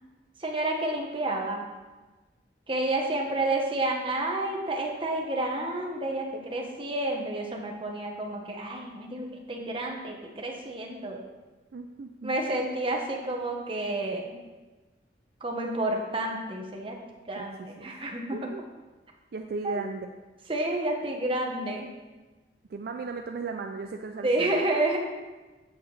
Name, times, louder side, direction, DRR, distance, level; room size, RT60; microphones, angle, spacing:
voice 1, 0.4-1.7 2.7-11.2 12.2-14.3 15.4-17.0 17.3-18.5 19.6-19.8 20.5-21.9 24.2-25.0, right 2 dB, 30° right, 1 dB, 1.1 m, -30 dB
voice 2, 11.7-12.3 17.4-17.9 18.3-18.6 19.3-20.1 22.7-24.6, right 3 dB, 60° right, 5 dB, 0.4 m, -36 dB
7.8 x 7.7 x 3.3 m, 1.2 s
head